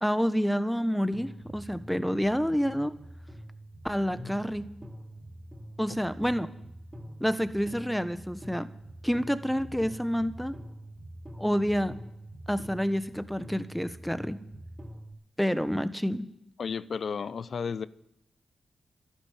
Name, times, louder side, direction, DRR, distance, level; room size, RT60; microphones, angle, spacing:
voice 1, 0.0-2.9 3.8-4.7 5.8-6.5 7.2-8.7 9.0-10.6 11.4-11.9 12.5-14.4 15.4-16.3, equal, 5° left, 1.2 m, -28 dB
sound 1, 1.1-15.1, right 1 dB, 25° right, 3.7 m, -45 dB
voice 2, 16.6-17.9, left 6 dB, 65° left, 0.6 m, -33 dB
12.5 x 11.0 x 9.0 m
supercardioid pair, 50°, 0 cm